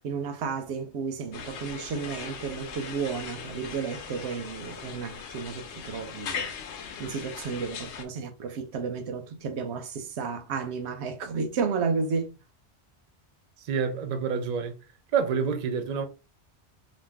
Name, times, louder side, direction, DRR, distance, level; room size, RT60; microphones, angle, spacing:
voice 1, 0.0-6.5 7.0-12.4, right 5 dB, 80° right, 0.9 m, -32 dB
sound 1, 1.3-8.0, left 6 dB, 85° left, 0.9 m, -39 dB
voice 2, 13.6-14.7 15.1-16.1, right 6 dB, 55° right, 0.6 m, -27 dB
2.5 x 2.1 x 3.3 m
omnidirectional pair, 1.1 m